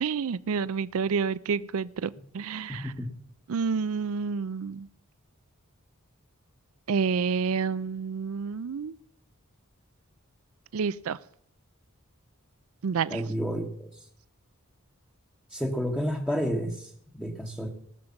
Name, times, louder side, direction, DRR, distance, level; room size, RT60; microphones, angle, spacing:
voice 1, 0.0-2.9 3.5-4.9 6.9-9.0 10.7-11.2 12.8-13.2, right 5 dB, 70° right, 17 dB, 0.4 m, -29 dB
voice 2, 2.7-3.1 13.1-14.0 15.5-17.7, equal, 5° left, 0 dB, 1.1 m, -31 dB
18.5 x 6.7 x 7.1 m, 0.66 s
head